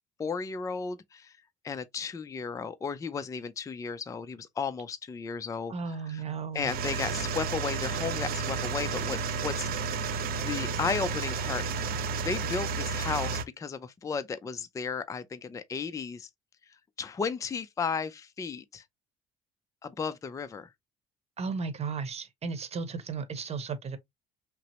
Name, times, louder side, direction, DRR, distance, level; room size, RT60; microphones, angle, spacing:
voice 1, 0.2-1.4 1.6-5.7 6.1-6.2 6.5-10.1 10.4-11.6 12.2-16.3 17.0-18.8 19.8-20.7, left 5 dB, 20° left, 0.4 m, -34 dB
voice 2, 5.7-6.7 21.4-24.0, right 5 dB, 40° right, 0.9 m, -35 dB
sound 1, 6.6-13.4, right 5 dB, 65° right, 0.7 m, -32 dB
5.8 x 2.0 x 2.8 m
cardioid pair, 110°, 17 cm